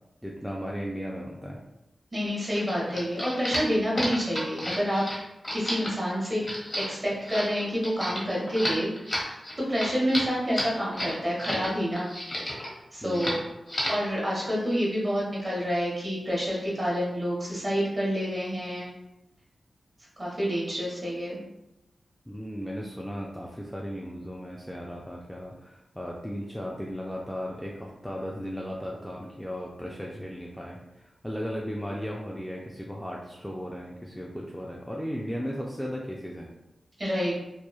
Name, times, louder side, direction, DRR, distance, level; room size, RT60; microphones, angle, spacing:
voice 1, 0.2-1.6 13.0-13.4 22.3-36.5, equal, 5° left, -3 dB, 0.3 m, -36 dB
voice 2, 2.1-5.1 5.5-6.4 6.8-12.1 12.9-13.4 13.9-18.9 20.2-21.4 37.0-37.3, equal, 25° right, -5 dB, 1.1 m, -28 dB
sound 1, 2.5-11.7 12.0-12.7 13.1-13.4 13.7-14.1, equal, 35° left, 1.0 m, -32 dB
3.0 x 2.2 x 2.3 m, 0.92 s
wide cardioid pair, 80°, 0 cm